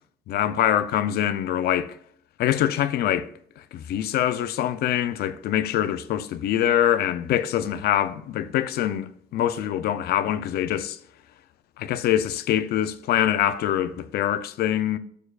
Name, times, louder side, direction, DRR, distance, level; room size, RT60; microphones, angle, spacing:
voice 1, 0.3-1.9 2.4-3.3 3.7-11.0 11.8-15.0, left 11 dB, 70° left, 0.7 m, -24 dB
11.5 x 6.6 x 2.5 m
cardioid pair, 110°, 17 cm